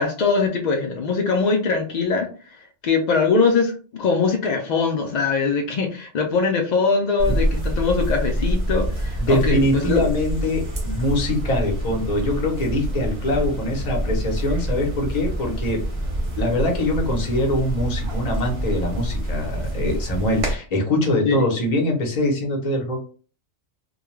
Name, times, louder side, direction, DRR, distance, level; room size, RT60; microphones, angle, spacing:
voice 1, 0.0-2.3 2.6-10.1 21.2-21.5, left 4 dB, 70° left, 2 dB, 0.4 m, -22 dB
sound 1, 7.2-20.6, right 1 dB, 40° right, 0.5 m, -26 dB
voice 2, 9.2-15.8 16.4-23.0, left 1 dB, 40° left, 0 dB, 0.7 m, -23 dB
2.3 x 2.2 x 3.0 m, 0.39 s
omnidirectional pair, 1.3 m